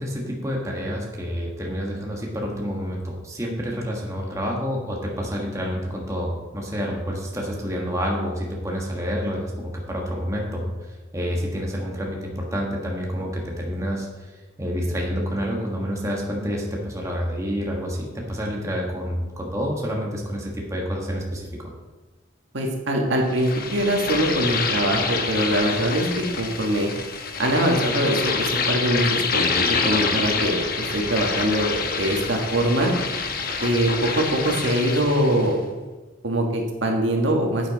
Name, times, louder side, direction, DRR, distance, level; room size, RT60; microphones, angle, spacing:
voice 1, 0.0-14.3 14.6-21.5, equal, 15° right, -2 dB, 1.4 m, -28 dB
voice 2, 22.5-26.9 27.4-29.4 29.8-32.9 33.6-35.6 36.2-37.7, right 1 dB, 70° right, 1 dB, 1.7 m, -23 dB
sound 1, 23.3-35.5, left 5 dB, 50° left, 0.9 m, -27 dB
9.9 x 8.4 x 4.1 m, 1.2 s
head